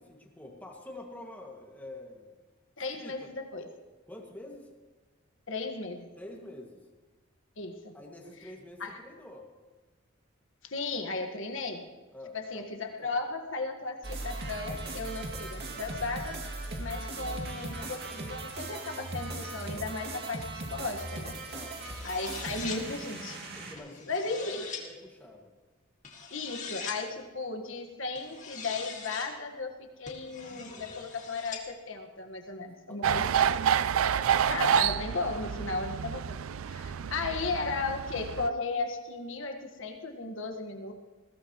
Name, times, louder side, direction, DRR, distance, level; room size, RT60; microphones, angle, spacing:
voice 1, 0.0-2.4 2.9-3.2 4.1-4.7 6.2-6.9 7.9-9.5 12.1-12.6 13.0-13.2 21.5-21.8 23.6-25.5 27.1-27.2 32.9-33.3 34.1-34.3 36.8-37.0, left 1 dB, 10° left, -1 dB, 2.1 m, -47 dB
voice 2, 2.8-3.7 5.5-6.1 7.6-7.9 8.8-9.0 10.6-11.8 12.3-16.4 16.8-21.3 22.0-23.4 24.1-24.6 26.3-33.5 34.5-36.4 36.7-40.9, left 3 dB, 65° left, 4 dB, 1.6 m, -35 dB
sound 1, 14.0-23.8, right 2 dB, 55° right, 2.3 m, -38 dB
sound 2, 21.8-22.8 23.8-24.8 26.0-27.0 28.2-29.3 30.1-31.6, left 6 dB, 40° left, 2.1 m, -42 dB
sound 3, 33.0-38.5, right 8 dB, 80° right, 0.4 m, -28 dB
21.0 x 16.0 x 3.1 m, 1.3 s
head